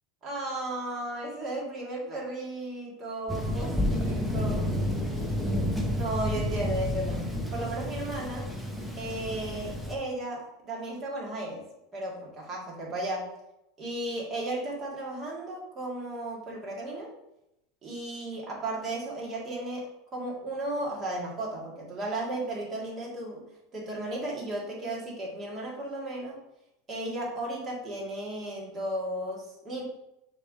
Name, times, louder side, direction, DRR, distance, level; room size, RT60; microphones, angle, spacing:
voice 1, 0.2-4.8 5.9-8.5 9.0-11.6 11.9-13.3 13.8-17.1 17.8-23.4 23.7-26.4 26.9-29.8, right 1 dB, 25° right, -4 dB, 2.0 m, -35 dB
Thunder, 3.3-10.0, left 1 dB, ahead, 0.8 m, -30 dB
6.5 x 3.2 x 5.4 m, 0.86 s
supercardioid pair, 160°, 0 cm